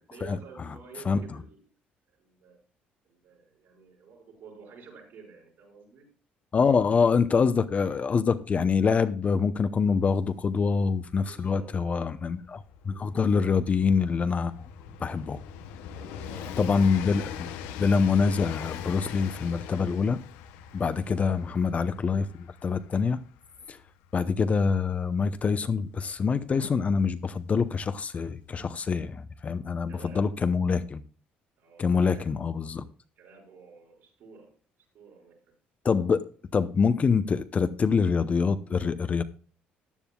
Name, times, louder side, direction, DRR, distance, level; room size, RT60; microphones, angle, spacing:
voice 1, 0.1-1.7 2.2-2.6 3.0-6.1 11.2-12.2 13.4-13.5 15.9-16.9 21.2-21.4 29.9-30.3 31.6-32.3 33.2-34.5 34.9-35.5, right 5 dB, 70° right, 6.0 m, -50 dB
voice 2, 6.5-14.7 15.0-15.4 16.6-17.5 17.7-20.2 20.7-23.2 23.7-23.8 24.1-31.0 31.8-32.8 35.8-36.2 36.5-39.2, left 5 dB, 35° left, 0.7 m, -25 dB
Train, 10.0-10.1 10.3-26.9 27.9-28.0, left 8 dB, 90° left, 0.7 m, -42 dB
14.5 x 9.9 x 2.3 m
supercardioid pair, 85°, 4 cm